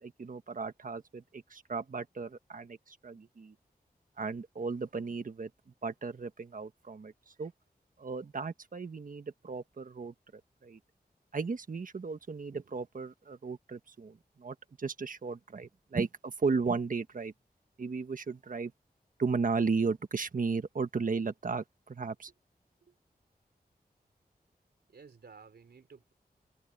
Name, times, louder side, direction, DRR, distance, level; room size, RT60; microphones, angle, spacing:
voice 1, 0.0-3.5 4.2-5.5 5.8-7.5 8.0-10.1 10.6-10.8 11.3-17.3 17.8-18.7 19.2-22.3, right 4 dB, 55° right, 1.4 m, -35 dB
voice 2, 24.9-26.1, right 5 dB, 90° right, 3.7 m, -54 dB
wide cardioid pair, 100°, 16 cm